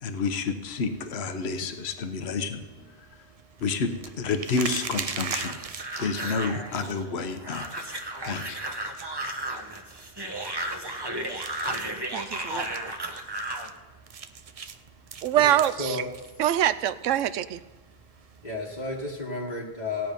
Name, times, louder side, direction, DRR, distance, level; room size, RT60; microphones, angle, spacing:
voice 1, 0.0-2.9 3.6-5.6 6.0-7.7 8.0-8.6, left 4 dB, 60° left, 7 dB, 1.2 m, -30 dB
sound 1, 0.7-19.2, right 6 dB, 50° right, 0.4 m, -43 dB
sound 2, 5.3-13.7, right 1 dB, 20° right, 1.1 m, -34 dB
voice 2, 12.1-12.7 15.2-16.0 16.4-17.6, right 11 dB, 85° right, 15 dB, 1.0 m, -24 dB
voice 3, 15.3-16.1 18.4-20.1, left 2 dB, 35° left, -5 dB, 1.5 m, -32 dB
16.5 x 9.2 x 5.3 m, 1.2 s
omnidirectional pair, 1.3 m